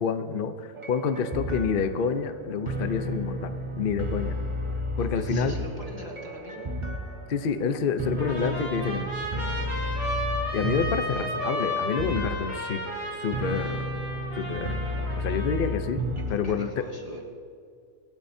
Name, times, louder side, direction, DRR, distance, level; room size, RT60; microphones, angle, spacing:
voice 1, 0.0-4.4 5.0-5.5 7.3-9.1 10.5-12.8 13.2-13.9 14.3-14.8 15.2-16.0 16.3-16.7, left 6 dB, 65° left, 9 dB, 0.5 m, -28 dB
sound 1, 0.8-16.7, equal, 40° right, 0.4 m, -33 dB
voice 2, 5.0-6.7 11.0-11.3 16.3-17.2, equal, 20° left, -1 dB, 2.0 m, -42 dB
Trumpet, 8.2-15.8, left 1 dB, 70° right, 5.1 m, -33 dB
25.0 x 12.0 x 2.7 m, 2.3 s
omnidirectional pair, 1.9 m